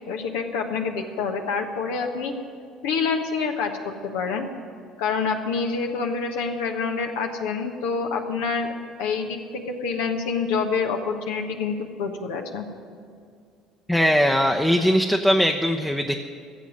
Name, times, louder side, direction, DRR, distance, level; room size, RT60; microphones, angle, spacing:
voice 1, 0.1-2.3 2.8-4.5 5.0-8.7 9.0-12.7, left 5 dB, 70° left, 4 dB, 1.2 m, -27 dB
voice 2, 13.9-16.1, equal, 10° left, 3 dB, 0.8 m, -20 dB
15.0 x 7.3 x 9.4 m, 2.3 s
hypercardioid pair, 65°, 0 cm